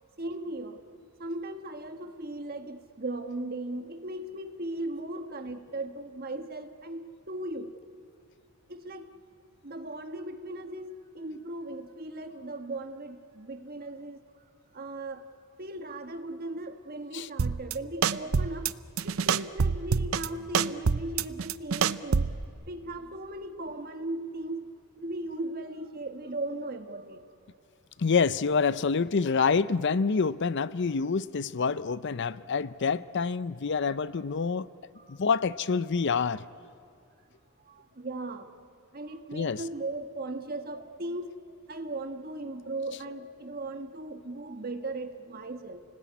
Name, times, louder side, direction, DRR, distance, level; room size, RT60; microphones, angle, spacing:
voice 1, 0.2-0.8 1.2-7.7 8.7-9.1 9.6-14.2 14.7-15.2 15.6-18.7 19.0-22.4 22.7-24.7 25.0-27.2 34.7-35.2 37.6-38.5 38.9-45.8, right 2 dB, 45° right, 7 dB, 1.4 m, -37 dB
sound 1, 17.4-17.7 18.0-18.7 19.0-20.3 20.5-22.4, right 5 dB, 70° right, 0.6 m, -26 dB
voice 2, 28.0-34.7 35.1-36.4 39.3-39.6, left 5 dB, 55° left, 16 dB, 0.5 m, -27 dB
29.5 x 19.5 x 9.5 m, 2.5 s
head